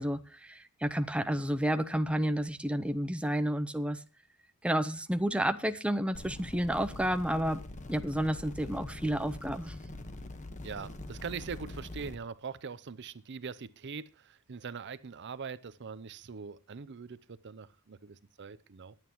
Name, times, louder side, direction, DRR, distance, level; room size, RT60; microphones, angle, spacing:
voice 1, 0.0-4.0 4.6-7.6 7.9-9.7, right 1 dB, 5° right, 0.6 m, -30 dB
sound 1, 6.1-12.2, left 1 dB, 35° left, 1.3 m, -44 dB
voice 2, 10.6-17.2 17.4-18.9, right 5 dB, 55° right, 0.6 m, -42 dB
20.5 x 8.9 x 3.0 m
head